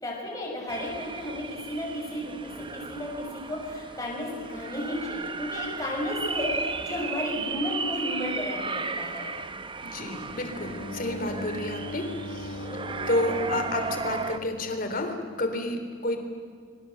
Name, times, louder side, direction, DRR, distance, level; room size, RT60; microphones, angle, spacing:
voice 1, 0.0-9.3, left 1 dB, 15° left, -3 dB, 6.3 m, -33 dB
sound 1, 0.7-14.4, right 4 dB, 25° right, 0.8 m, -35 dB
voice 2, 9.8-12.7 13.1-16.2, left 1 dB, 45° left, 6 dB, 3.3 m, -30 dB
Bowed string instrument, 10.4-15.3, left 2 dB, 70° left, 1.9 m, -40 dB
27.5 x 24.0 x 7.8 m, 2.1 s
head